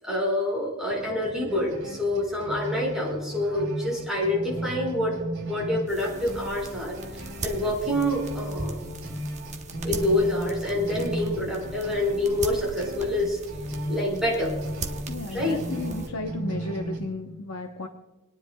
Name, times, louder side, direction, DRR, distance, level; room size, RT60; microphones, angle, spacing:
voice 1, 0.0-5.1 5.5-7.0 7.4-8.9 9.8-13.4 13.9-14.5 15.3-15.6, left 1 dB, 5° right, -4 dB, 5.1 m, -27 dB
sound 1, 0.9-17.0, right 1 dB, 60° right, 4.1 m, -36 dB
sound 2, 5.9-16.1, right 3 dB, 35° right, 0.9 m, -39 dB
voice 2, 15.1-17.9, left 2 dB, 75° left, 3 dB, 0.8 m, -34 dB
28.5 x 10.0 x 2.3 m, 1.2 s
head